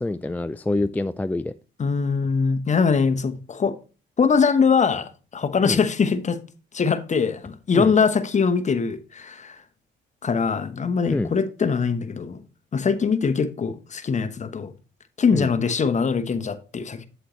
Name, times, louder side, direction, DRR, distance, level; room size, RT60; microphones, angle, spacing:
voice 1, 0.0-1.5 5.6-5.8 7.7-7.9 11.1-11.3 15.3-15.5, left 2 dB, 10° left, 0.3 m, -26 dB
voice 2, 1.8-3.8 4.2-6.4 6.7-9.6 10.2-12.4 12.7-14.7 15.2-17.1, left 5 dB, 35° left, 1.0 m, -22 dB
8.1 x 7.8 x 3.1 m
cardioid pair, 90°, 20 cm